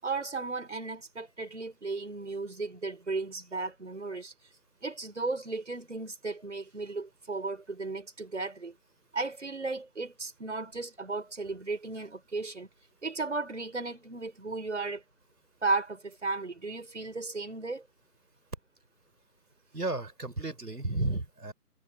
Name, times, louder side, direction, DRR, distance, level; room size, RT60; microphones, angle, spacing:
voice 1, 0.0-4.3 4.8-8.8 9.1-12.7 13.0-15.0 15.6-17.8, right 3 dB, 45° right, 5.8 m, -35 dB
voice 2, 19.7-21.5, right 2 dB, 80° right, 5.5 m, -33 dB
figure-of-eight pair, 180°, 47 cm